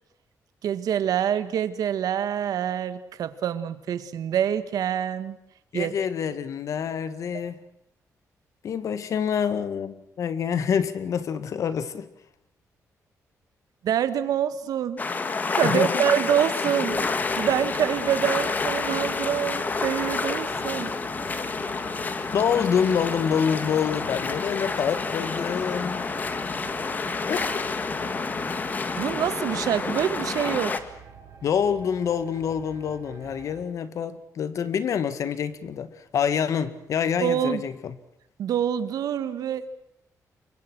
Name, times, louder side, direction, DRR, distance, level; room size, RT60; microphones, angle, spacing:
voice 1, 0.6-5.4 5.7-5.9 7.3-7.5 13.8-15.0 15.5-17.1 17.4-20.9 28.9-30.7 37.2-37.6 38.4-39.7, right 9 dB, 90° right, 1.9 m, -26 dB
voice 2, 5.7-7.6 8.6-12.1 15.6-16.0 22.3-26.1 27.3-27.6 31.4-37.9, left 7 dB, 60° left, 1.8 m, -26 dB
sound 1, 15.0-30.8, left 4 dB, 30° left, 1.8 m, -29 dB
sound 2, 16.9-33.6, right 7 dB, 55° right, 4.2 m, -46 dB
28.5 x 23.5 x 6.3 m
wide cardioid pair, 175°, 6 cm